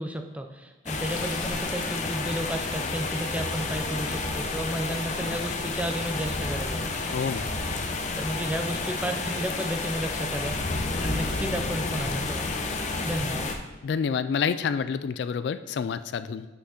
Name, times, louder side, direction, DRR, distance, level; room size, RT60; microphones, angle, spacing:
voice 1, 0.0-6.8 8.2-10.6 11.0-12.4 13.0-13.5, equal, 5° right, 5 dB, 0.5 m, -32 dB
sound 1, 0.9-13.6, left 3 dB, 40° left, 0.7 m, -30 dB
sound 2, 1.0-7.0, left 4 dB, 80° left, 1.2 m, -48 dB
Organ, 1.4-12.0, left 1 dB, 55° right, 1.8 m, -50 dB
voice 2, 7.1-7.4 13.8-16.5, left 6 dB, 60° left, 13 dB, 0.3 m, -28 dB
6.2 x 5.7 x 6.4 m, 1.1 s
head